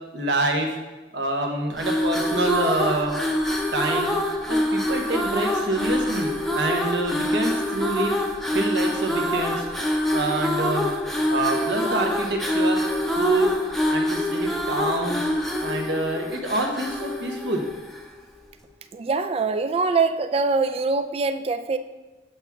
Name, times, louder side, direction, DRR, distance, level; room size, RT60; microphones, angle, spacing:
voice 1, 0.1-0.7 1.1-3.2 3.7-4.1 4.5-8.1 8.5-9.6 10.1-10.9 11.3-12.8 13.2-13.5 13.9-15.3 15.6-17.6, right 2 dB, 75° right, 2 dB, 1.1 m, -26 dB
sound 1, 1.7-18.2, left 1 dB, ahead, 0.6 m, -25 dB
voice 2, 18.9-21.8, right 4 dB, 35° right, 10 dB, 0.3 m, -23 dB
7.8 x 5.8 x 3.6 m, 1.2 s
head